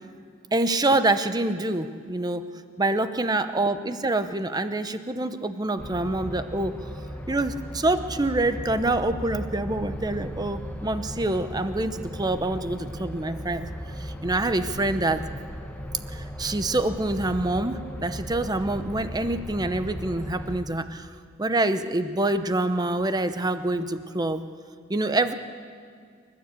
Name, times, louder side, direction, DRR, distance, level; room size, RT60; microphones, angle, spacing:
voice 1, 0.5-2.4 2.8-6.9 7.3-13.7 14.0-15.2 16.1-21.1 21.4-24.4 24.9-25.3, right 2 dB, 20° right, 10 dB, 0.8 m, -26 dB
sound 1, 5.8-20.6, equal, 5° left, 1.3 m, -36 dB
28.5 x 12.5 x 8.3 m, 2.2 s
head